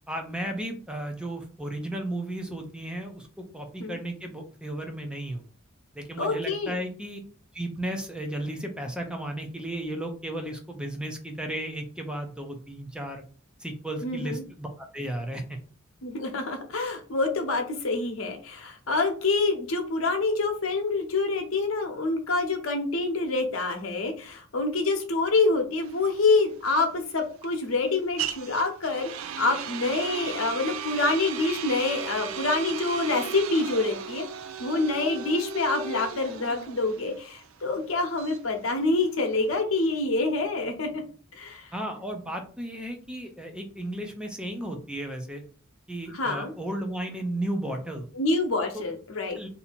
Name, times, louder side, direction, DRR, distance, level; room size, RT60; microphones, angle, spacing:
voice 1, 0.1-5.4 6.0-7.2 7.5-13.2 13.6-15.6 41.7-45.4 45.9-48.1 48.7-48.9 49.4-49.5, right 1 dB, 5° right, 4 dB, 0.5 m, -34 dB
voice 2, 6.2-6.7 14.0-14.4 16.0-29.1 29.4-34.2 34.6-41.0 41.3-41.7 46.1-46.5 48.1-49.4, left 3 dB, 85° left, 4 dB, 0.9 m, -26 dB
sound 1, 25.8-39.6, right 7 dB, 80° right, 0.4 m, -36 dB
2.7 x 2.7 x 4.2 m, 0.40 s
head